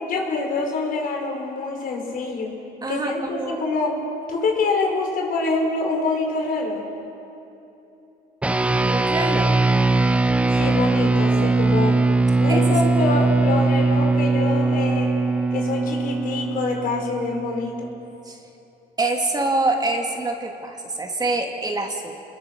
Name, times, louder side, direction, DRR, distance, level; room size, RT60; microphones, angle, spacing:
voice 1, 0.0-2.5 2.9-4.0 4.3-6.9 10.6-12.0 12.4-15.1 15.5-17.9, left 3 dB, 60° left, 1 dB, 5.2 m, -25 dB
voice 2, 2.8-3.7 8.9-9.6 12.5-12.8 18.3-18.4 19.0-22.1, right 2 dB, 25° right, 2 dB, 2.4 m, -25 dB
sound 1, 8.4-18.1, right 3 dB, 5° right, 0.7 m, -20 dB
29.0 x 21.5 x 6.2 m, 3.0 s
cardioid pair, 110°, 17 cm